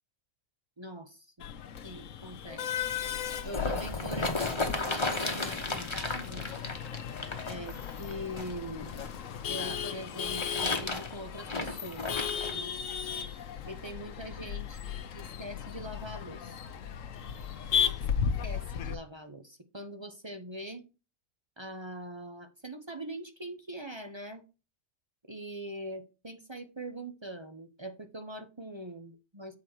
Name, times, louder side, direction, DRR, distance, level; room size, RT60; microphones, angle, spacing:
voice 1, 0.8-1.5 1.8-2.7 3.4-6.5 7.4-9.2 9.4-12.2 12.5-12.8 13.7-14.8 15.1-16.6 18.4-20.8 21.6-24.4 25.2-29.5, right 1 dB, 25° right, 6 dB, 0.8 m, -42 dB
Male speech man speaking / Laughter / Chatter, 1.4-19.0, left 7 dB, 80° left, 1.2 m, -36 dB
sound 1, 3.1-9.2 10.0-12.5 13.2-13.3, left 2 dB, 25° left, 1.2 m, -34 dB
8.4 x 4.7 x 4.4 m, 0.31 s
omnidirectional pair, 1.4 m